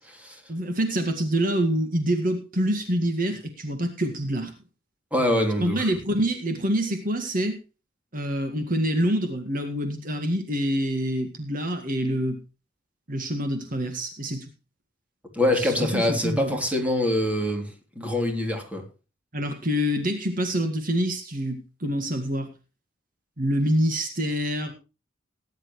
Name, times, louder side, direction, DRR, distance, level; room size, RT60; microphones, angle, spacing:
voice 1, 0.5-4.5 5.6-7.6 8.1-12.4 13.1-14.5 15.6-16.6 19.3-22.5 23.4-24.7, equal, 50° right, 6 dB, 1.8 m, -26 dB
voice 2, 5.1-5.9 15.3-18.8, left 1 dB, 10° right, 2 dB, 3.4 m, -24 dB
19.0 x 10.5 x 3.1 m, 0.31 s
head